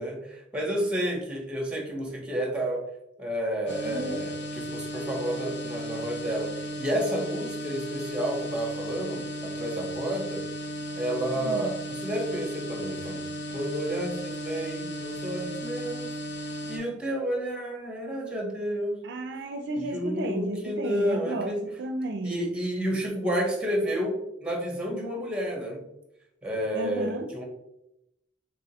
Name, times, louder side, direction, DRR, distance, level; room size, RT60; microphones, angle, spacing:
voice 1, 0.0-2.8 3.2-10.4 10.9-16.1 16.7-18.9 19.9-21.6 22.2-24.1 24.4-25.8 26.4-27.4, equal, 5° right, 1.3 m, -30 dB
sound 1, 3.7-16.8, equal, 85° left, 1.1 m, -35 dB
voice 2, 3.8-4.2 11.4-11.7 19.0-22.5 26.7-27.3, right 1 dB, 65° right, 0.4 m, -33 dB
4.9 x 3.7 x 2.9 m
head